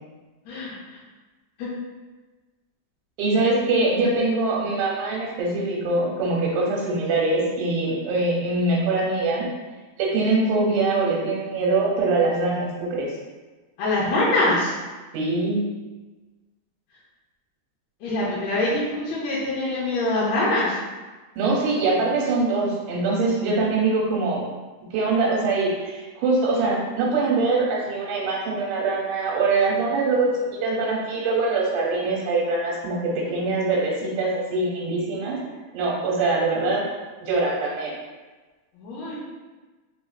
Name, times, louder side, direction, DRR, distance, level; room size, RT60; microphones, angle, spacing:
voice 1, 3.2-9.5 10.0-13.1 15.1-15.6 21.4-24.5 24.8-35.4 35.7-36.8 37.2-37.9, right 3 dB, 90° right, -4 dB, 2.2 m, -23 dB
voice 2, 13.8-14.7 18.0-20.8 33.2-33.3 38.8-39.2, left 2 dB, 75° left, -8 dB, 1.8 m, -24 dB
4.5 x 3.2 x 2.4 m, 1.3 s
omnidirectional pair, 3.6 m